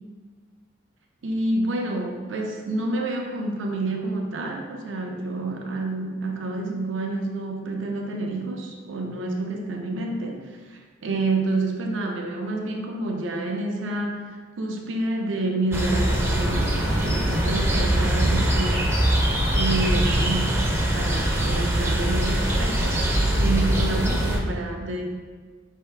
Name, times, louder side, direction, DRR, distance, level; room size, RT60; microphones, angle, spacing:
voice 1, 1.2-18.9 19.5-25.1, right 2 dB, 85° right, 1 dB, 0.6 m, -28 dB
sound 1, 15.7-24.4, right 1 dB, 15° right, 0.4 m, -22 dB
5.4 x 2.7 x 3.3 m, 1.5 s
head